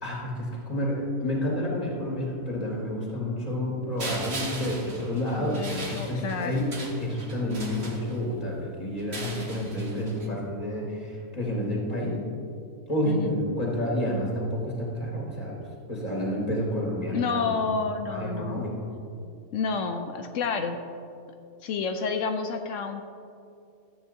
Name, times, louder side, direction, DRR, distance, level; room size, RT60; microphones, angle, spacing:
voice 1, 0.0-6.7 7.0-12.2 12.9-15.6 15.9-17.5 18.0-18.8, left 1 dB, 30° left, -4 dB, 2.7 m, -29 dB
sound 1, 4.0-8.4 9.0-10.3, right 2 dB, 55° right, 1.6 m, -39 dB
voice 2, 5.4-6.6 13.1-13.3 17.1-18.6 19.5-20.8 21.6-23.0, left 5 dB, 75° left, 6 dB, 1.0 m, -29 dB
13.5 x 9.1 x 2.8 m, 2.5 s
omnidirectional pair, 1.3 m